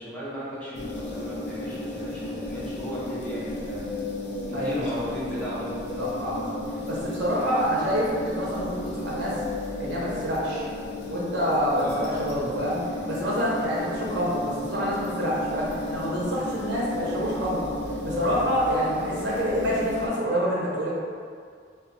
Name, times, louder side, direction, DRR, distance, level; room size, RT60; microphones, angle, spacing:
voice 1, 0.0-3.9 4.5-6.1 11.7-12.1, equal, 5° left, -9 dB, 0.5 m, -35 dB
sound 1, 0.7-20.1, left 2 dB, 60° left, 0.4 m, -33 dB
voice 2, 6.0-6.5 6.8-9.3 9.8-10.7 11.1-12.8 13.1-17.6 18.0-20.9, equal, 65° right, -6 dB, 0.6 m, -27 dB
2.1 x 2.1 x 3.7 m, 2.1 s
head